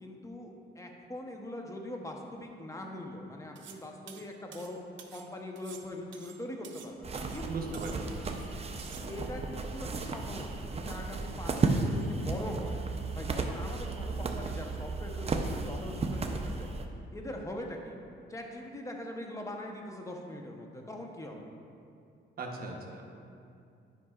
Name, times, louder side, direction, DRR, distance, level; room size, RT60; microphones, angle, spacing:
voice 1, 0.0-4.8 5.1-7.8 9.1-12.8 13.1-16.7 17.1-18.0 18.3-21.4, left 1 dB, 15° left, 1 dB, 0.9 m, -42 dB
sound 1, 3.6-3.8 4.1-5.3 5.6-6.9 7.1-7.5 7.7-8.5 8.8-9.0, right 8 dB, 70° right, 0.7 m, -50 dB
sound 2, 7.0-16.9, right 3 dB, 30° right, 0.6 m, -34 dB
voice 2, 7.5-7.9 22.4-23.0, right 3 dB, 50° right, 0 dB, 1.1 m, -38 dB
11.0 x 5.4 x 2.4 m, 2.5 s
cardioid pair, 90°, 20 cm